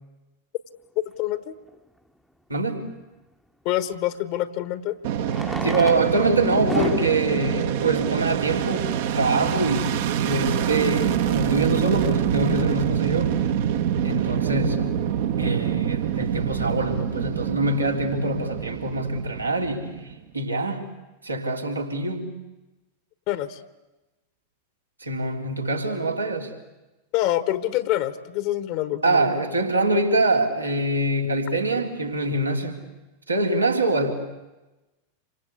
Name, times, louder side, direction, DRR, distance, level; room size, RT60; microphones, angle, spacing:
voice 1, 1.2-1.5 3.6-5.0 23.3-23.6 27.1-29.3, left 14 dB, 45° left, 13 dB, 1.4 m, -26 dB
Fireworks, 1.7-1.8 4.0-4.1 5.2-9.0 9.7-9.8 10.0-10.1 10.3-10.4 10.9-11.2, equal, ahead, 1.1 m, -34 dB
voice 2, 2.5-2.8 5.6-13.3 14.0-14.9 15.4-20.9 21.2-22.4 25.0-26.5 29.0-32.8 33.3-34.1, right 2 dB, 80° right, 2 dB, 3.3 m, -24 dB
Fixed-wing aircraft airplane, 5.0-20.2, right 9 dB, 55° right, 1.4 m, -25 dB
27.5 x 25.0 x 8.4 m, 1.1 s
figure-of-eight pair, 90°, 0 cm